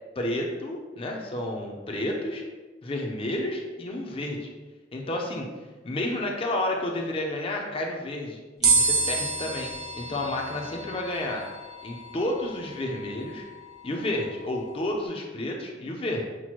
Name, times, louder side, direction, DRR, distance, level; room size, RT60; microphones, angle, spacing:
voice 1, 0.2-2.4 2.8-4.5 4.9-5.5 5.8-9.7 10.0-11.4 11.8-13.5 13.8-16.2, left 1 dB, 30° left, 0 dB, 0.5 m, -31 dB
sound 1, 8.6-15.1, right 4 dB, 25° right, 0.5 m, -30 dB
5.9 x 2.1 x 2.9 m, 1.3 s
head